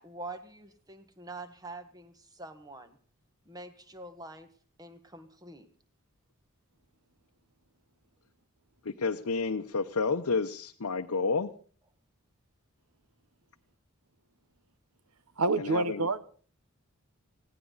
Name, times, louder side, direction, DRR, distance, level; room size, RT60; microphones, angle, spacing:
voice 1, 0.0-3.0 3.4-4.5 4.8-5.7, right 2 dB, 15° right, 9 dB, 1.6 m, -45 dB
voice 2, 8.8-11.5 15.6-16.1, left 4 dB, 85° left, 4 dB, 0.9 m, -30 dB
voice 3, 15.4-16.2, right 3 dB, 90° right, 15 dB, 1.1 m, -27 dB
20.0 x 17.0 x 4.1 m, 0.42 s
head